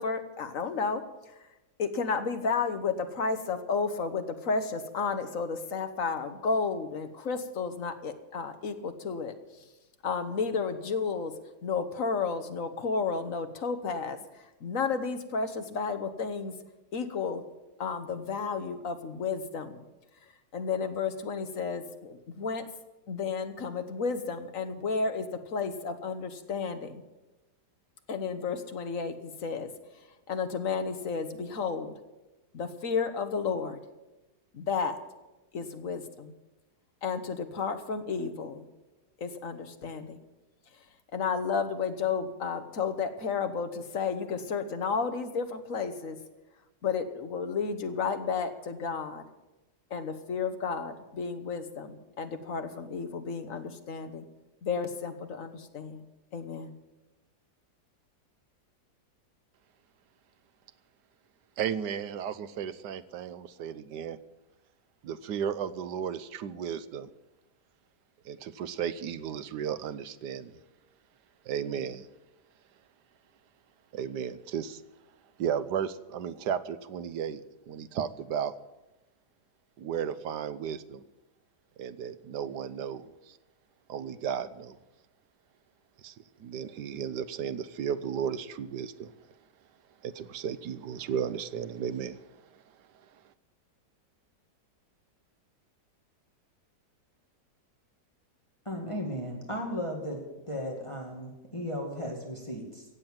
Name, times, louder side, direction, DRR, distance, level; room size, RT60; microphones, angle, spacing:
voice 1, 0.0-1.3 1.8-9.3 10.0-11.3 11.6-14.2 14.6-16.5 16.9-17.4 17.8-19.8 20.5-22.6 23.1-27.0 28.1-29.7 30.3-31.9 32.5-33.8 34.5-34.9 35.5-36.3 37.0-38.6 39.2-40.2 41.1-46.2 46.8-49.2 49.9-54.2 54.6-56.0 56.3-56.7, left 5 dB, 50° left, 8 dB, 1.6 m, -32 dB
voice 2, 61.6-64.2 65.0-67.1 68.2-70.6 71.4-72.1 73.9-74.8 75.4-78.5 79.8-81.0 81.8-83.4 83.9-84.8 86.0-86.1 86.4-89.1 90.0-92.3, right 8 dB, 80° right, 14 dB, 1.4 m, -34 dB
voice 3, 98.7-100.2 100.5-102.8, equal, 15° left, 1 dB, 2.4 m, -35 dB
16.5 x 7.7 x 9.0 m, 1.0 s
omnidirectional pair, 1.8 m